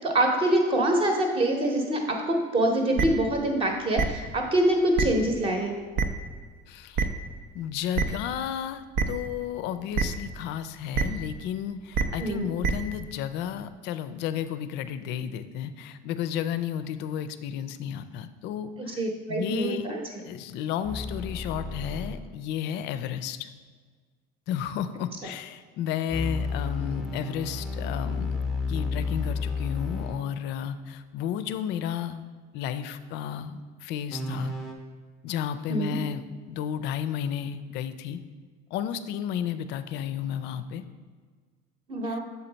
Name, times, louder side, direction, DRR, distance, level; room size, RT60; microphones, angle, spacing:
voice 1, 0.0-5.7 12.2-12.5 18.8-20.0 35.7-36.0 41.9-42.2, right 1 dB, 25° right, 3 dB, 0.8 m, -25 dB
sound 1, 3.0-3.1 4.0-4.1 5.0-5.1 6.0-6.1 7.0-7.1 8.0-8.1 9.0-9.1 10.0-10.1 10.9-11.0 11.9-12.0 12.6-12.7, right 5 dB, 65° right, 0.6 m, -23 dB
voice 2, 6.7-7.1 7.5-19.9 20.2-23.5 24.5-28.4 28.7-32.2 32.5-34.5 35.2-38.2 38.7-40.8 42.0-42.2, left 9 dB, 55° left, 12 dB, 0.4 m, -32 dB
sound 2, 20.8-22.3 26.1-30.3 34.1-34.7, left 4 dB, ahead, 0.5 m, -32 dB
6.9 x 4.4 x 4.0 m, 1.5 s
cardioid pair, 165°, 21 cm